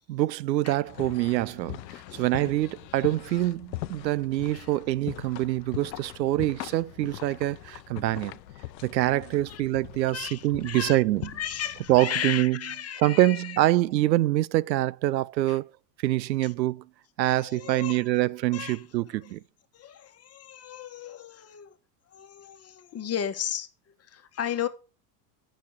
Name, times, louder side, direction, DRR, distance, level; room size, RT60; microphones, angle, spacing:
voice 1, 0.1-1.8 2.1-8.3 8.8-11.3 11.9-12.6 13.0-15.7 16.0-16.8 17.2-19.4, right 16 dB, 90° right, 0.6 m, -25 dB
sound 1, 0.9-12.0, left 15 dB, 85° left, 0.8 m, -41 dB
voice 2, 10.1-13.6 15.5-15.6 17.2-18.0 18.5-18.8 19.7-21.7 22.1-23.7 24.1-24.7, left 9 dB, 30° left, 1.3 m, -35 dB
8.5 x 6.3 x 6.3 m
hypercardioid pair, 95°, 49 cm